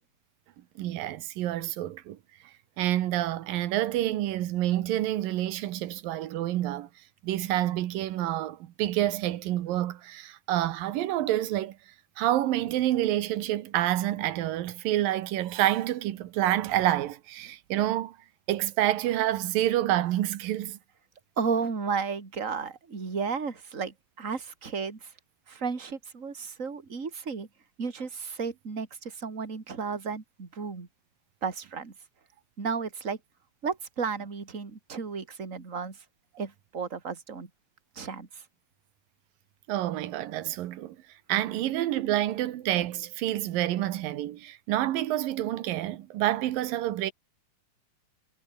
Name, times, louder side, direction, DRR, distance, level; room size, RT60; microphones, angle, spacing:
voice 1, 0.8-2.2 2.8-6.9 7.2-11.7 12.2-18.2 18.5-20.8 39.7-41.0 41.3-47.1, right 13 dB, 90° right, 3.0 m, -28 dB
voice 2, 21.4-25.1 25.5-27.5 27.8-30.9 31.4-31.9 32.6-33.2 33.6-36.0 36.4-37.5 37.9-38.4, right 5 dB, 25° right, 3.0 m, -33 dB
omnidirectional pair, 3.9 m